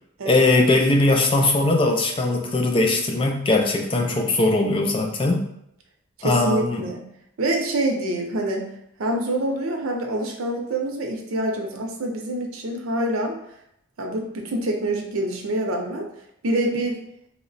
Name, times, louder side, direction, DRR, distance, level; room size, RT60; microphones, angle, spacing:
voice 1, 0.3-5.4 6.2-6.9, left 2 dB, 25° left, 1 dB, 0.4 m, -20 dB
voice 2, 6.2-7.0 7.4-8.7 9.0-13.4 14.0-16.0 16.4-17.0, right 1 dB, 85° right, 2 dB, 0.6 m, -26 dB
2.9 x 2.1 x 4.0 m, 0.77 s
head